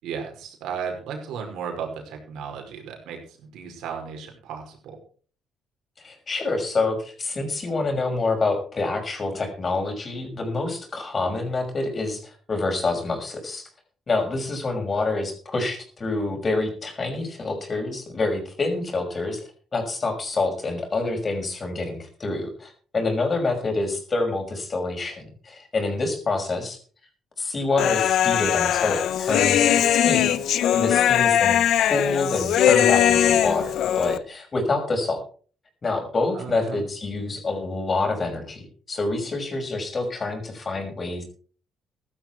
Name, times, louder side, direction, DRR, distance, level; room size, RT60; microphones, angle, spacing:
voice 1, 0.0-5.0 23.4-23.6 36.3-36.8, right 6 dB, 85° right, 2 dB, 5.4 m, -35 dB
voice 2, 6.0-13.7 14.1-26.8 27.4-31.6 31.9-35.2 35.8-41.2, left 3 dB, 35° left, 5 dB, 6.0 m, -27 dB
Human voice, 27.8-34.2, left 10 dB, 75° left, 1.0 m, -20 dB
15.5 x 12.5 x 4.7 m, 0.42 s
cardioid pair, 90°, 0 cm